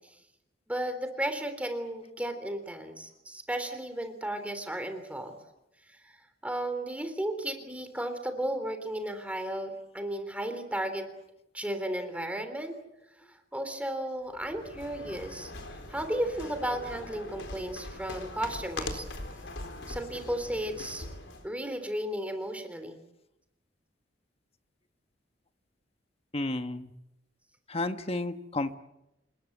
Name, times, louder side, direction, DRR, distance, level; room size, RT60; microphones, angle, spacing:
voice 1, 0.7-5.4 5.9-6.2 6.4-11.0 11.5-12.7 13.5-15.5 15.9-19.0 19.9-21.1 21.4-23.0, right 1 dB, 10° right, 8 dB, 3.4 m, -34 dB
sound 1, 14.3-21.5, left 2 dB, 80° left, 4.1 m, -41 dB
voice 2, 26.3-26.9 27.7-28.7, left 2 dB, 35° left, 9 dB, 1.4 m, -32 dB
28.0 x 20.5 x 8.1 m, 0.89 s
head